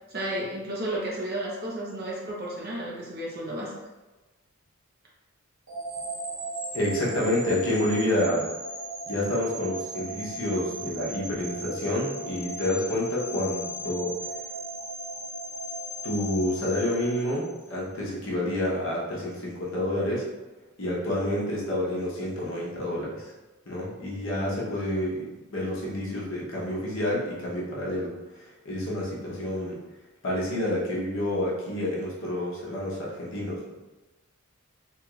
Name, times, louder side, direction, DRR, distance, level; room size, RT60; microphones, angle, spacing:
voice 1, 0.1-3.7, right 1 dB, 45° right, -4 dB, 0.8 m, -32 dB
sound 1, 5.7-17.8, right 1 dB, 90° right, 0.9 m, -37 dB
voice 2, 6.7-8.4 9.1-14.1 16.0-20.3 20.8-23.3 23.7-29.8 30.2-33.6, left 1 dB, 60° left, -5 dB, 0.9 m, -29 dB
3.1 x 2.4 x 3.0 m, 1.1 s
head